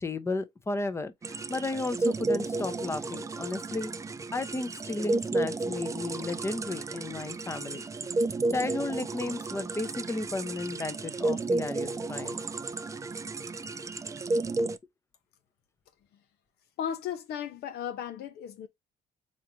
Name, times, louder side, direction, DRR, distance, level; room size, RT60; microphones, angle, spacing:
voice 1, 0.0-3.9 4.3-7.8 8.5-12.4, left 2 dB, 15° left, 0.7 m, -34 dB
sound 1, 1.2-14.8, right 2 dB, 20° right, 0.4 m, -32 dB
voice 2, 16.8-18.7, left 9 dB, 70° left, 0.9 m, -35 dB
3.9 x 3.2 x 2.7 m
cardioid pair, 110°, 17 cm